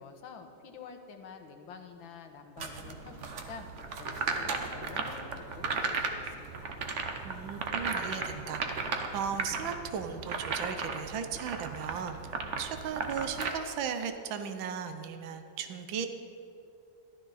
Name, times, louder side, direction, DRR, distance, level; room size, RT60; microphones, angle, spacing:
voice 1, 0.0-3.7 4.0-6.8, left 5 dB, 80° left, 5 dB, 1.8 m, -48 dB
sound 1, 2.6-13.5, right 4 dB, 50° right, 0.9 m, -36 dB
voice 2, 7.2-16.1, right 7 dB, 80° right, 8 dB, 1.5 m, -37 dB
14.0 x 12.0 x 4.1 m, 2.6 s
omnidirectional pair, 2.1 m